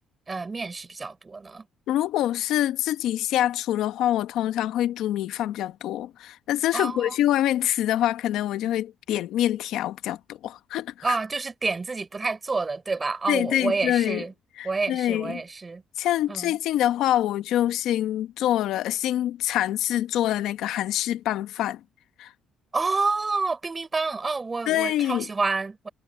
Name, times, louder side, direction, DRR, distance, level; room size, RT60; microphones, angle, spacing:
voice 1, 0.3-1.7 6.7-7.2 11.0-14.3 14.6-15.8 16.3-16.6 22.7-25.9, right 3 dB, 30° right, 6.1 m, -28 dB
voice 2, 1.9-11.2 13.3-14.2 14.6-15.4 16.0-21.8 22.2-22.3 24.7-25.2, left 12 dB, 80° left, 1.0 m, -25 dB
supercardioid pair, 70°, 0 cm